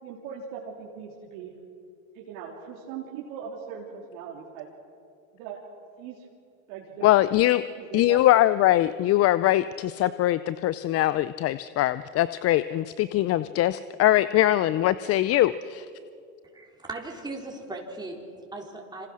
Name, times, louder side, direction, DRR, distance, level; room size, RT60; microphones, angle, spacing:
voice 1, 0.0-1.5 2.1-4.7 5.3-5.6 6.0-6.3 6.7-7.1 7.8-8.2 8.8-8.9, right 7 dB, 65° right, -4 dB, 3.6 m, -39 dB
voice 2, 7.0-7.6 7.9-15.9, left 14 dB, 35° left, 15 dB, 0.6 m, -22 dB
voice 3, 16.5-19.1, right 2 dB, 10° right, 0 dB, 4.1 m, -38 dB
27.0 x 26.0 x 6.3 m, 2.5 s
hypercardioid pair, 100°, 41 cm